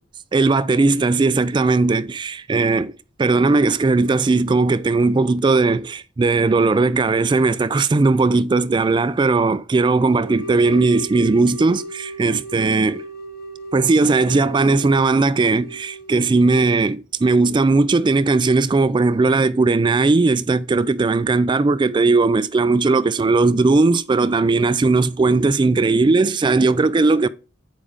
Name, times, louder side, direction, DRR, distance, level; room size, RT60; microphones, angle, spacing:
voice 1, 0.3-13.1 13.7-27.3, right 3 dB, 25° right, 0.3 m, -18 dB
sound 1, 10.1-16.9, right 1 dB, 50° left, 1.2 m, -36 dB
9.2 x 4.9 x 4.9 m
head